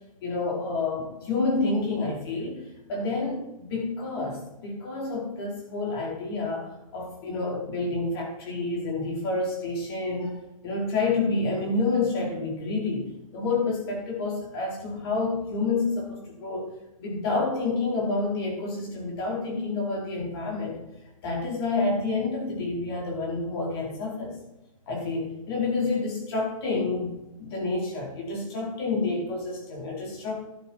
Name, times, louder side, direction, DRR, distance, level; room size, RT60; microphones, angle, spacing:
voice 1, 0.2-2.6 2.9-16.7 17.0-20.8 21.2-24.4 24.9-27.1 27.4-30.4, left 3 dB, 45° left, -2 dB, 4.5 m, -29 dB
12.0 x 10.0 x 4.5 m, 0.96 s
hypercardioid pair, 150°, 18 cm